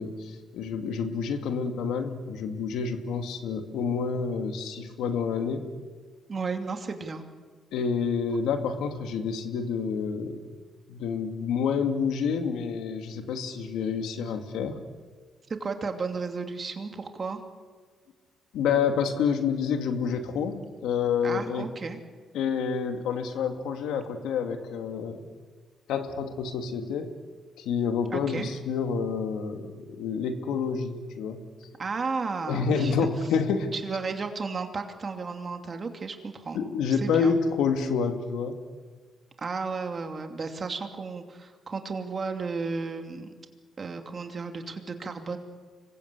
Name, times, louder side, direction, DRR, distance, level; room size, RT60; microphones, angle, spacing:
voice 1, 0.0-5.7 7.7-10.4 10.9-14.8 18.5-21.7 22.3-25.2 25.9-27.1 27.6-31.4 32.5-33.8 36.5-38.6, left 6 dB, 85° left, 6 dB, 2.5 m, -28 dB
voice 2, 6.3-7.2 15.5-17.4 21.2-22.0 28.1-28.5 31.8-33.0 33.7-36.6 36.9-37.3 39.4-43.3 43.8-45.4, right 4 dB, 40° right, 5 dB, 2.7 m, -33 dB
25.5 x 21.0 x 8.5 m, 1.5 s
cardioid pair, 90°, 0 cm